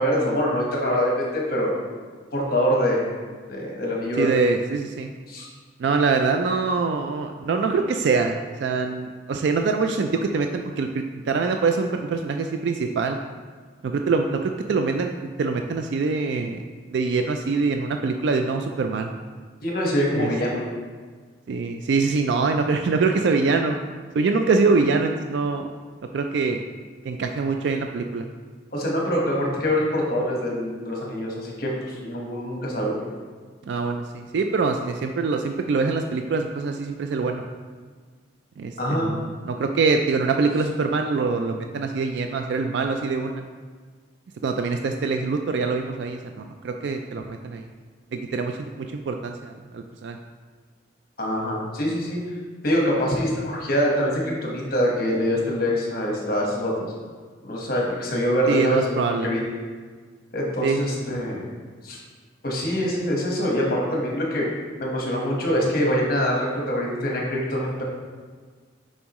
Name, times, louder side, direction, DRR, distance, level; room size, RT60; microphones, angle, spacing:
voice 1, 0.0-1.7 2.3-3.0 3.5-4.3 5.3-5.5 19.6-20.6 28.7-33.0 38.8-39.1 51.2-52.2 52.6-56.9 57.4-59.4 60.3-61.5 61.8-62.0 62.4-64.5 64.8-67.8, equal, 50° left, -2 dB, 1.2 m, -24 dB
voice 2, 4.2-5.1 5.8-13.2 13.8-16.6 16.9-19.1 20.1-20.3 21.5-23.8 24.1-25.7 26.1-26.6 27.0-28.3 33.7-37.5 38.6-43.4 44.4-47.7 48.1-50.2 58.5-59.3 60.6-60.9, right 4 dB, 65° right, 5 dB, 0.3 m, -24 dB
7.1 x 5.3 x 3.0 m, 1.5 s
head